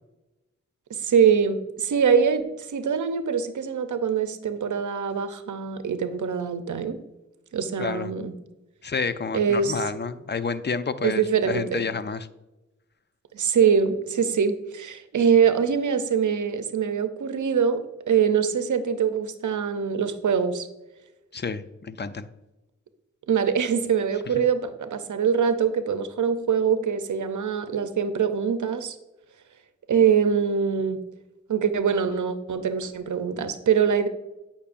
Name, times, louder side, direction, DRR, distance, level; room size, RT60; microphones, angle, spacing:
voice 1, 1.0-7.0 7.5-8.3 9.3-9.7 11.0-11.9 13.3-20.7 23.3-29.0 29.9-31.0 31.5-34.1, right 7 dB, 85° right, 10 dB, 0.6 m, -23 dB
voice 2, 7.8-8.1 8.8-12.3 21.3-22.3 24.4-24.5, left 5 dB, 35° left, 12 dB, 0.5 m, -30 dB
8.4 x 5.7 x 2.5 m, 1.0 s
cardioid pair, 45°, 30 cm